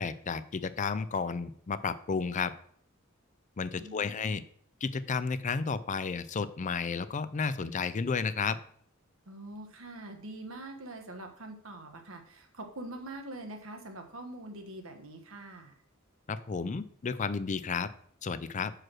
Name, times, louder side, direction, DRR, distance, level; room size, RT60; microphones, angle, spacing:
voice 1, 0.0-2.5 3.6-4.4 4.8-8.6 16.3-17.9 18.2-18.7, left 5 dB, 35° left, 14 dB, 0.4 m, -32 dB
voice 2, 3.8-4.4 9.3-15.7, right 1 dB, 80° right, 5 dB, 1.4 m, -44 dB
6.1 x 4.8 x 6.3 m, 0.62 s
head